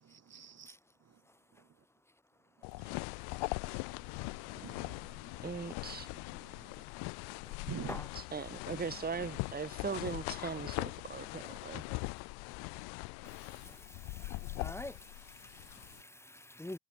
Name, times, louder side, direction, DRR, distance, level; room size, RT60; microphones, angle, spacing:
voice 1, 0.0-0.7 2.8-2.9 3.6-5.5 6.1-6.7 7.7-8.0, right 8 dB, 40° right, 3.2 m, -48 dB
sound 1, 2.6-16.0, left 29 dB, 85° left, 0.8 m, -41 dB
voice 2, 5.4-6.1 8.1-11.8, right 5 dB, 25° right, 2.0 m, -39 dB
voice 3, 13.2-16.8, left 1 dB, 5° left, 4.9 m, -47 dB
supercardioid pair, 90°, 38 cm